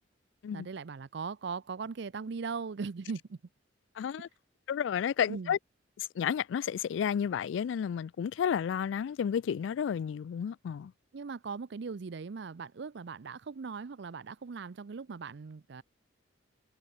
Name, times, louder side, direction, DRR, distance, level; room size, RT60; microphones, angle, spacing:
voice 1, 0.5-3.4 5.3-5.5 11.1-15.8, right 5 dB, 65° right, 0.5 m, -39 dB
voice 2, 4.0-4.3 4.7-5.6 6.0-10.9, left 8 dB, 70° left, 0.3 m, -31 dB
head